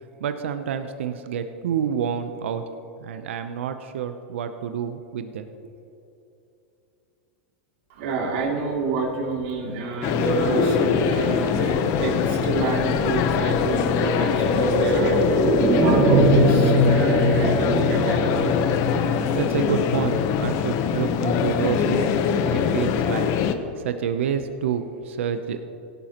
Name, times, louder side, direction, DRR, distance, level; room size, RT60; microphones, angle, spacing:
voice 1, 0.2-2.6 3.0-5.7 19.3-22.2 22.5-23.3 23.8-25.6, right 8 dB, 80° right, 8 dB, 0.7 m, -28 dB
voice 2, 7.9-15.4 15.7-18.6, right 4 dB, 65° right, -1 dB, 2.7 m, -28 dB
sound 1, 10.0-23.5, left 7 dB, 45° left, 0.9 m, -23 dB
sound 2, 11.3-21.0 21.3-21.4, right 1 dB, 45° right, 2.8 m, -23 dB
17.5 x 11.0 x 3.0 m, 2.8 s
hypercardioid pair, 125°, 6 cm